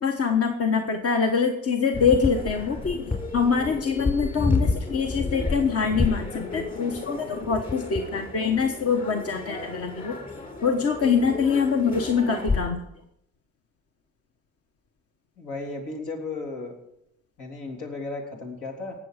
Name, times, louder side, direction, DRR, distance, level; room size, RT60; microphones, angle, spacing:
voice 1, 0.0-10.2 10.6-12.8, left 5 dB, 50° left, 4 dB, 1.3 m, -24 dB
sound 1, 1.9-12.6, left 3 dB, 30° left, 4.0 m, -30 dB
voice 2, 15.4-16.7 17.4-18.9, left 3 dB, 80° left, 0 dB, 3.5 m, -34 dB
19.0 x 7.3 x 5.1 m, 0.79 s
cardioid pair, 90°, 30 cm